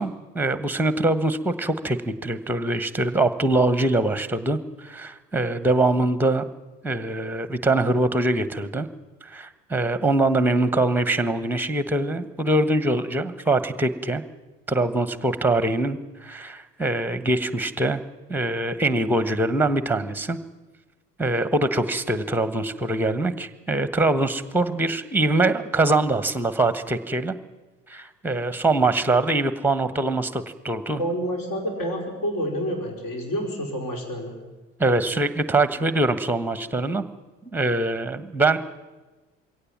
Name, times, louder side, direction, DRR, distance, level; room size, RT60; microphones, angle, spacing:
voice 1, 0.0-6.4 6.8-8.9 9.2-14.2 14.7-18.0 18.3-20.4 21.2-27.3 27.9-31.0 34.8-37.0 37.5-38.6, right 2 dB, 5° right, 13 dB, 1.2 m, -23 dB
voice 2, 31.0-34.3, equal, 55° left, 2 dB, 5.0 m, -28 dB
22.5 x 17.0 x 7.5 m, 1.2 s
figure-of-eight pair, 60°, 38 cm